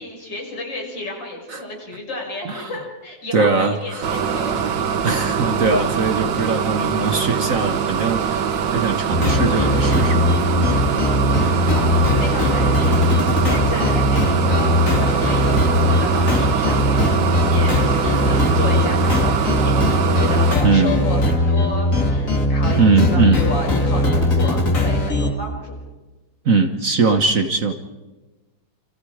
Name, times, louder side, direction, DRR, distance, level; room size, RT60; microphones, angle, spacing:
voice 1, 0.0-4.6 11.2-11.3 11.7-25.7, left 2 dB, 85° left, 0 dB, 6.7 m, -31 dB
voice 2, 3.3-4.1 4.5-4.7 5.0-10.8 20.6-21.0 22.8-23.4 26.4-27.7, right 4 dB, 50° right, 6 dB, 1.6 m, -20 dB
sound 1, 4.0-20.6, right 7 dB, 80° right, 1.9 m, -23 dB
sound 2, 9.1-25.3, left 1 dB, 45° left, 3.1 m, -19 dB
29.0 x 27.0 x 5.0 m, 1.2 s
omnidirectional pair, 1.9 m